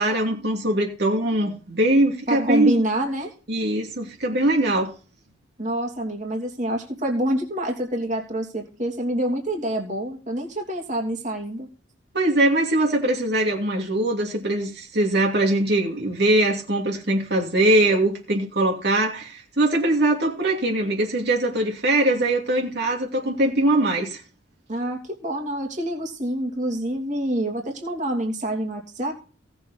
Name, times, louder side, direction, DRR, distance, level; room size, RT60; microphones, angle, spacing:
voice 1, 0.0-2.8 3.5-4.9 12.1-24.2, right 1 dB, 60° right, 2.6 m, -22 dB
voice 2, 2.3-3.3 5.6-11.7 24.7-29.1, right 1 dB, 40° right, 2.8 m, -27 dB
17.5 x 7.2 x 4.1 m
head